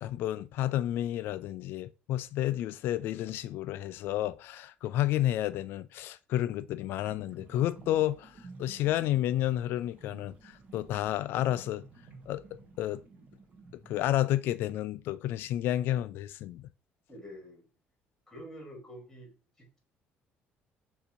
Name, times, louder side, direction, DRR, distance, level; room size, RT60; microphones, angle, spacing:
voice 1, 0.0-8.3 8.6-11.8 12.3-13.0 13.9-16.7, left 13 dB, 60° left, 0.3 m, -31 dB
sound 1, 7.0-14.0, right 3 dB, 40° right, 0.9 m, -52 dB
voice 2, 17.1-17.7 18.3-19.3 19.6-19.8, equal, 5° left, 1.6 m, -47 dB
6.7 x 2.8 x 2.6 m
cardioid pair, 175°, 4 cm